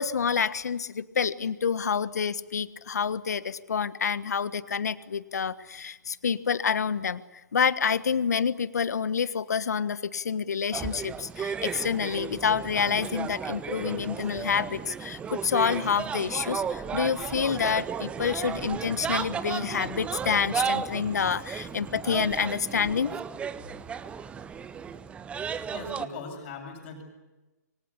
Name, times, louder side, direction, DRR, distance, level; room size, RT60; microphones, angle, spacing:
voice 1, 0.0-7.2 7.5-23.1, left 6 dB, 65° left, 15 dB, 1.4 m, -28 dB
sound 1, 10.7-26.1, right 6 dB, 10° right, 1.0 m, -34 dB
voice 2, 25.1-27.1, left 3 dB, 40° left, 3 dB, 7.7 m, -41 dB
27.5 x 24.5 x 8.6 m, 1.1 s
figure-of-eight pair, 125°, 9 cm